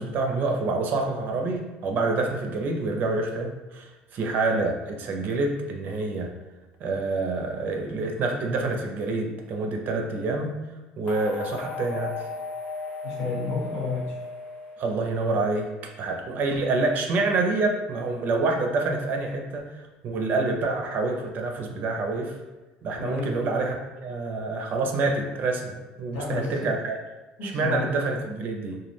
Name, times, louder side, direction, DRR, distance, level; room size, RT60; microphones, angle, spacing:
voice 1, 0.0-6.3 6.8-10.6 11.0-12.2 14.8-22.4 22.8-23.8 24.0-27.0 27.4-28.8, right 3 dB, 55° right, 3 dB, 0.4 m, -27 dB
sound 1, 11.1-15.3, left 4 dB, 40° left, 0.6 m, -36 dB
voice 2, 13.0-14.2 16.3-16.4 23.0-23.3 26.1-26.5 27.4-27.8, left 4 dB, 80° left, -5 dB, 1.1 m, -30 dB
2.2 x 2.0 x 3.2 m, 1.2 s
supercardioid pair, 95°, 4 cm